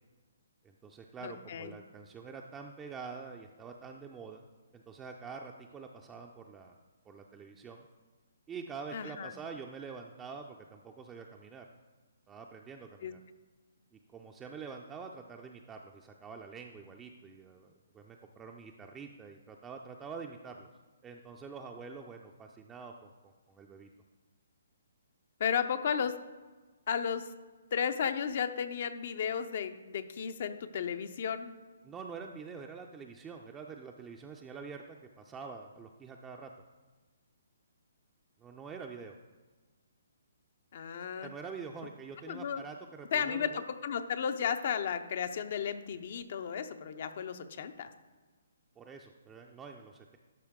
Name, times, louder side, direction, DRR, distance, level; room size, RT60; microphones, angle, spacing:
voice 1, 0.6-4.4 4.7-6.8 7.1-7.9 8.5-11.7 12.3-13.2 13.9-20.7 21.0-23.9 31.8-36.5 38.4-39.2 41.2-43.6 48.8-50.2, right 5 dB, 15° right, 2 dB, 0.4 m, -46 dB
voice 2, 1.2-1.7 8.9-9.3 13.0-13.1 25.4-26.1 26.9-27.3 27.7-31.5 40.7-41.3 42.3-42.6 43.1-47.9, left 7 dB, 55° left, 10 dB, 0.5 m, -34 dB
11.5 x 4.5 x 3.6 m, 1.3 s
hypercardioid pair, 140°, 0 cm